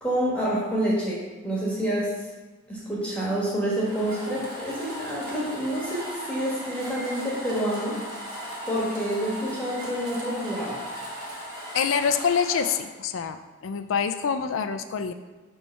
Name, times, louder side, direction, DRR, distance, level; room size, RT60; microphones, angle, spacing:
voice 1, 0.0-2.1 2.7-8.0 8.6-10.8, right 1 dB, 5° left, -7 dB, 1.3 m, -28 dB
sound 1, 3.8-12.8, equal, 20° right, 1.4 m, -37 dB
voice 2, 11.7-15.1, left 6 dB, 70° left, 9 dB, 0.4 m, -26 dB
5.5 x 3.3 x 5.5 m, 1.3 s
head